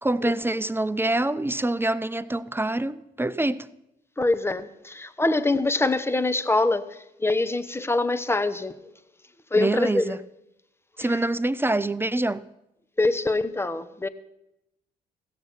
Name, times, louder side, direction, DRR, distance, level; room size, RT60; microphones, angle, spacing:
voice 1, 0.0-3.7 9.6-10.2 11.0-12.4, right 2 dB, 10° right, 0.5 m, -25 dB
voice 2, 4.2-8.7 9.5-10.2 11.0-11.1 13.0-14.1, left 2 dB, 10° left, 0.8 m, -24 dB
16.5 x 6.9 x 5.8 m
hypercardioid pair, 45°, 21 cm